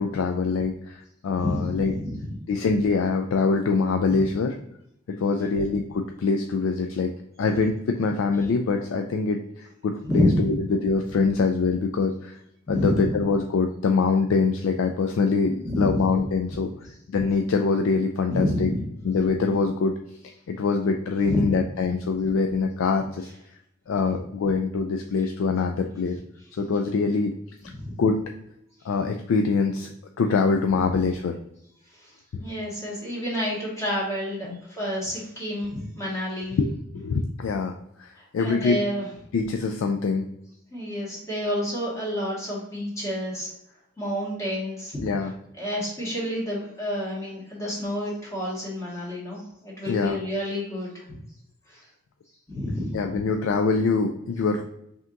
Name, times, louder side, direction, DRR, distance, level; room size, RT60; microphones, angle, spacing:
voice 1, 0.0-1.9 2.5-4.5 5.1-7.1 7.4-12.4 12.7-16.7 17.1-18.7 19.0-20.0 20.5-23.3 23.9-26.2 26.6-27.3 28.0-28.2 28.8-31.3 32.3-32.4 34.5-34.6 36.5-37.7 38.0-38.8 39.3-40.2 45.0-45.3 49.9-50.2 52.9-54.6, left 4 dB, 80° left, 4 dB, 0.4 m, -24 dB
voice 2, 1.4-2.3 4.1-4.3 5.1-5.5 8.4-8.5 10.0-10.5 12.7-13.1 15.6-16.0 18.3-18.8 21.2-21.4 27.6-28.0 31.9-36.6 38.1-39.1 40.7-43.5 44.0-45.3 45.6-51.0 51.7-51.9 52.5-53.0, left 1 dB, 15° left, -6 dB, 1.5 m, -29 dB
5.7 x 2.8 x 2.5 m, 0.79 s
head